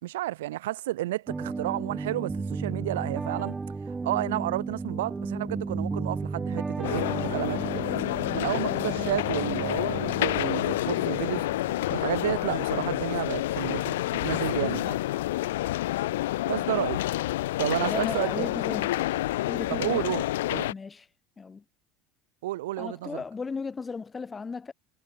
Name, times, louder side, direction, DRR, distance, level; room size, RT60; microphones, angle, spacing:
voice 1, 0.0-3.6 4.0-7.8 8.3-11.5 11.9-15.0 16.5-17.0 17.6-18.5 19.7-20.7 22.4-23.2, right 16 dB, 90° right, 1.5 m, -31 dB
sound 1, 1.3-12.5, right 4 dB, 15° right, 3.2 m, -34 dB
sound 2, 6.8-20.7, left 16 dB, 90° left, 2.1 m, -29 dB
voice 2, 17.8-19.1 19.5-20.1 20.7-21.1 21.4-21.6 22.8-24.7, left 4 dB, 20° left, 1.7 m, -35 dB
supercardioid pair, 105°, 0 cm